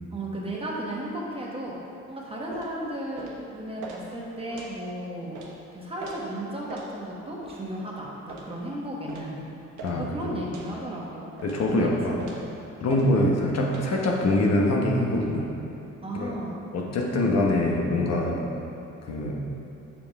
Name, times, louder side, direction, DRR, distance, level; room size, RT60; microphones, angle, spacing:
voice 1, 0.1-1.8 2.1-5.4 5.7-9.4 10.0-11.3 11.6-12.4 12.8-13.0 16.0-16.6, right 1 dB, 20° right, -4 dB, 1.3 m, -34 dB
sound 1, 2.5-2.7 3.2-3.4 3.8-4.0 4.5-4.7 5.3-5.5 6.0-6.2 6.7-6.9 7.4-7.6 8.3-8.5 9.1-9.3 9.8-10.0 10.5-10.7 11.4-11.6 12.2-12.5 12.9-13.1 13.6-13.9, right 4 dB, 75° right, 1.0 m, -41 dB
voice 2, 9.8-10.3 11.4-12.2 12.8-15.4 16.2-16.3 16.7-18.5 19.1-19.3, left 1 dB, 60° left, -1 dB, 1.0 m, -24 dB
5.6 x 5.1 x 4.7 m, 2.9 s
cardioid pair, 90°, 30 cm